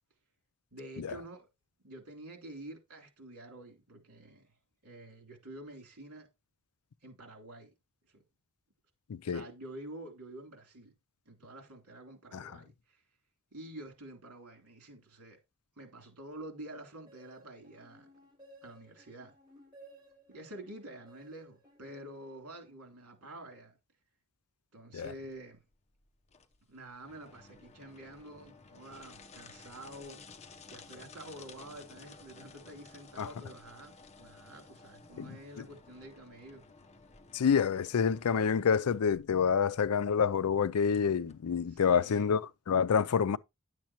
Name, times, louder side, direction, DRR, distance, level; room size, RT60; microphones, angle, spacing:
voice 1, 0.7-1.5 1.8-4.5 4.8-6.3 7.0-7.7 8.1-8.2 9.3-10.9 11.2-13.0 13.5-15.4 15.8-18.1 18.6-19.3 20.3-23.8 24.7-25.6 26.7-30.2 30.7-36.6 41.7-42.4, right 1 dB, 85° right, 3.1 m, -48 dB
voice 2, 9.1-9.4 12.3-12.5 24.9-25.1 33.2-33.3 35.2-35.6 37.3-43.4, left 6 dB, 85° left, 0.4 m, -28 dB
sound 1, 17.1-22.9, right 1 dB, 20° right, 6.0 m, -59 dB
sound 2, 25.0-42.1, left 4 dB, 30° left, 0.7 m, -55 dB
10.5 x 7.3 x 2.9 m
head